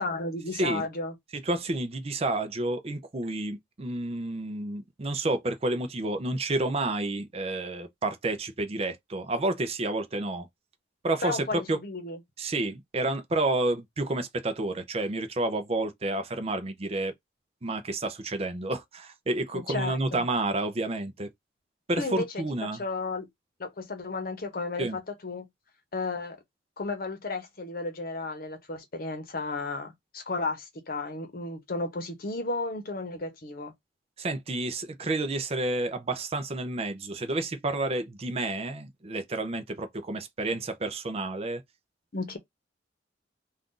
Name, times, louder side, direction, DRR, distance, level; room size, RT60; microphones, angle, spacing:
voice 1, 0.0-1.1 11.2-12.2 19.5-20.2 22.0-22.4 22.8-23.3 23.6-25.5 25.9-26.4 26.8-33.7 42.1-42.4, left 3 dB, 50° left, 0.8 m, -33 dB
voice 2, 0.5-0.9 1.3-10.5 11.0-11.8 12.4-17.1 17.6-21.3 21.9-22.8 24.8-25.0 34.2-41.6, right 2 dB, 35° right, 0.5 m, -30 dB
2.6 x 2.4 x 3.7 m
head